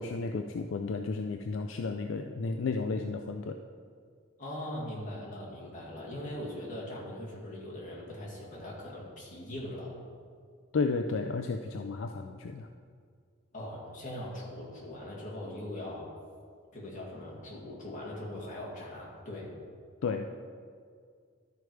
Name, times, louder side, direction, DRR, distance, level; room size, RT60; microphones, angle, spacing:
voice 1, 0.0-3.6 10.7-12.7 20.0-20.3, left 4 dB, 65° left, 5 dB, 0.4 m, -33 dB
voice 2, 4.4-9.9 13.5-16.1 16.7-19.5, left 1 dB, 40° left, -4 dB, 2.1 m, -40 dB
12.5 x 4.6 x 4.7 m, 2.1 s
head